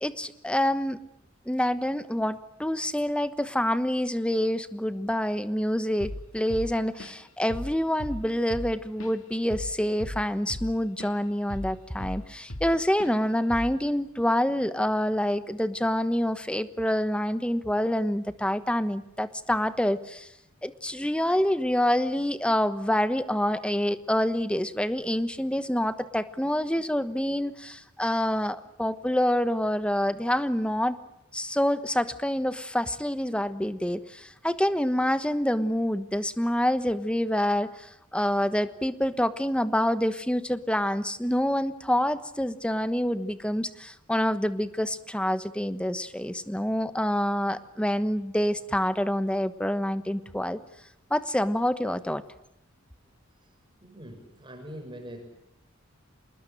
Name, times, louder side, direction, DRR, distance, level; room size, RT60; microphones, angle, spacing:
voice 1, 0.0-1.0 1.5-20.3 20.6-31.0 31.3-50.6 51.1-52.2, left 1 dB, 5° left, 13 dB, 1.2 m, -27 dB
Drum kit / Drum, 6.0-6.3 6.5-7.3 7.5-7.8 8.0-11.2 11.5-12.7 13.0-13.2 13.5-13.8, left 1 dB, 80° left, 2.4 m, -37 dB
voice 2, 53.8-55.2, equal, 25° right, 3 dB, 7.0 m, -42 dB
27.0 x 20.0 x 8.9 m, 0.82 s
head